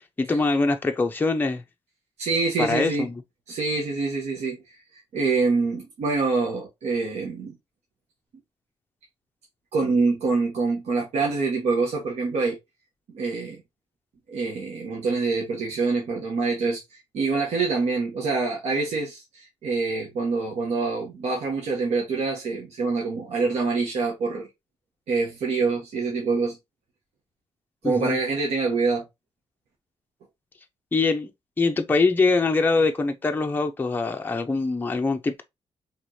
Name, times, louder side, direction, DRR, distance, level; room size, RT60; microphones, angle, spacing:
voice 1, 0.2-1.6 2.6-3.1 27.8-28.2 30.9-31.3 31.6-35.4, left 3 dB, 15° left, 0.6 m, -23 dB
voice 2, 2.2-3.1 3.5-7.6 9.7-12.6 13.1-13.6 14.3-16.8 17.1-24.5 25.1-26.6 27.8-29.0, right 4 dB, 80° right, 1.3 m, -25 dB
4.7 x 3.5 x 2.7 m
cardioid pair, 130°, 11 cm